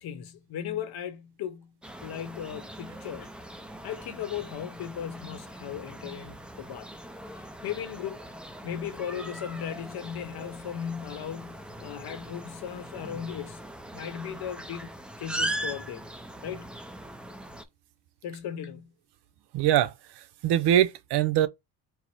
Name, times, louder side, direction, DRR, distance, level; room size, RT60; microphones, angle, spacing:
voice 1, 0.0-1.7 2.0-3.3 3.8-6.9 7.6-8.4 8.6-13.6 13.9-16.0 16.4-16.7 18.2-18.9, left 9 dB, 70° left, 0.9 m, -37 dB
sound 1, 1.8-17.6, right 1 dB, 5° right, 0.4 m, -40 dB
voice 2, 19.5-19.9 20.4-21.5, right 11 dB, 80° right, 0.7 m, -22 dB
4.7 x 2.1 x 4.4 m
cardioid pair, 140°, 39 cm